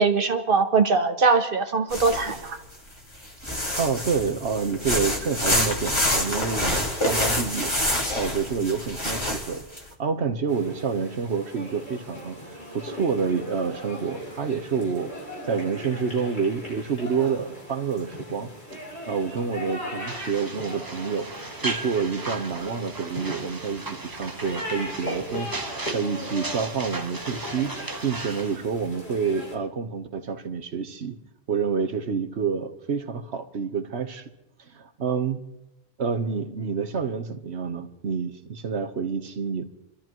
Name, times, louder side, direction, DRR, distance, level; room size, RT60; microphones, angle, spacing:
voice 1, 0.0-2.6, right 4 dB, 60° right, 7 dB, 1.2 m, -21 dB
sound 1, 1.9-2.6 3.2-9.8, left 1 dB, 25° left, 2.1 m, -27 dB
voice 2, 3.8-7.7 8.1-9.6 10.0-12.4 12.7-15.1 15.4-18.8 19.1-21.3 21.6-27.7 28.0-31.2 31.5-34.3 34.7-35.4 36.0-39.6, right 5 dB, 90° right, 7 dB, 1.3 m, -28 dB
sound 2, 10.5-29.5, equal, 85° left, 3.9 m, -38 dB
sound 3, 20.1-28.6, right 3 dB, 20° right, 0.8 m, -36 dB
28.0 x 13.0 x 3.0 m, 0.89 s
omnidirectional pair, 1.1 m